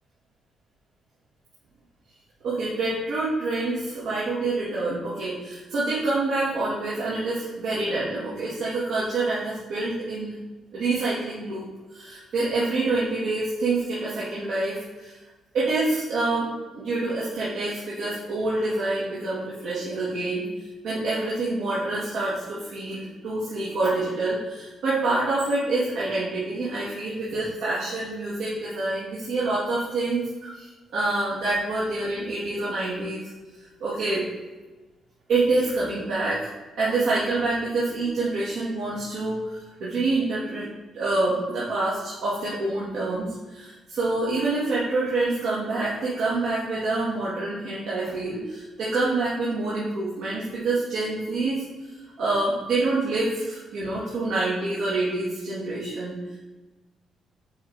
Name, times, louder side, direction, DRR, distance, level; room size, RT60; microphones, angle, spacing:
voice 1, 2.4-10.4 10.7-15.2 15.5-16.5 16.8-20.4 20.8-33.2 33.8-34.3 35.3-36.5 36.8-40.7 40.9-51.6 52.2-56.2, right 2 dB, 75° right, -9 dB, 1.8 m, -27 dB
8.3 x 3.5 x 3.9 m, 1.2 s
cardioid pair, 90°, 0 cm